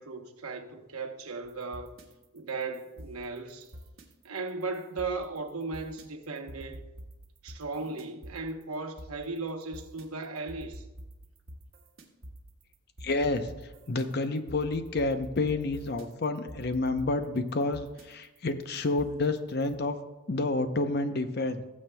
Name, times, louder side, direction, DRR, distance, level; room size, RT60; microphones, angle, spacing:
voice 1, 0.0-1.9 2.3-3.7 4.2-6.8 7.4-10.9, right 3 dB, 90° right, 1.0 m, -36 dB
sound 1, 1.4-19.8, equal, 65° right, 1.4 m, -48 dB
voice 2, 13.0-13.5 13.9-20.0 20.3-21.6, left 2 dB, 45° left, 0.6 m, -29 dB
18.5 x 7.2 x 2.2 m
head